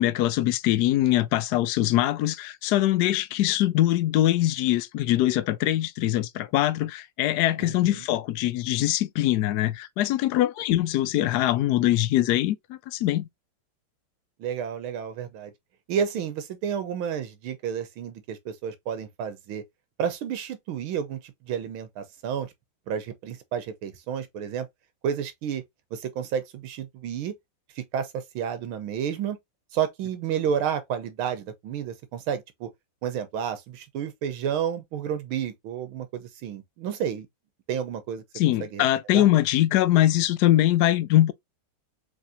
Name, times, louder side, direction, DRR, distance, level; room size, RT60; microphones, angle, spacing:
voice 1, 0.0-13.3 38.4-41.3, left 14 dB, 80° left, 0.9 m, -23 dB
voice 2, 7.6-8.0 14.4-15.5 15.9-19.6 20.0-22.5 22.9-24.7 25.0-25.6 25.9-27.3 27.8-29.4 29.7-32.7 33.0-37.3 37.7-38.2 38.6-38.8 39.1-39.3, right 8 dB, 85° right, 1.7 m, -31 dB
4.7 x 3.4 x 2.6 m
omnidirectional pair, 2.2 m